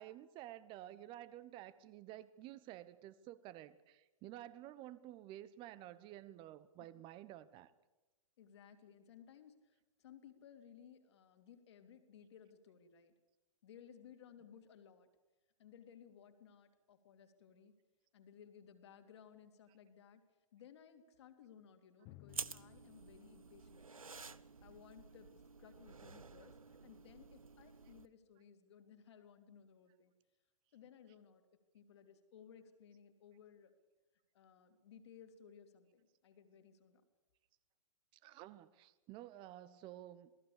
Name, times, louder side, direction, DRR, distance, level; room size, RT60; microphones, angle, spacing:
voice 1, 0.0-7.7 38.2-40.3, right 13 dB, 30° right, 16 dB, 1.1 m, -52 dB
voice 2, 8.4-13.1 13.6-15.1 15.6-17.7 18.1-20.2 20.5-24.1 24.6-25.3 25.6-26.6 26.8-30.1 30.7-31.5 31.7-33.7 34.3-37.0, left 8 dB, 50° left, 7 dB, 2.8 m, -60 dB
Drum, 22.1-25.6, left 18 dB, 30° left, 0.8 m, -63 dB
sound 1, 22.3-28.1, right 4 dB, 80° right, 0.9 m, -51 dB
27.5 x 18.5 x 6.9 m, 1.1 s
figure-of-eight pair, 110°, 17 cm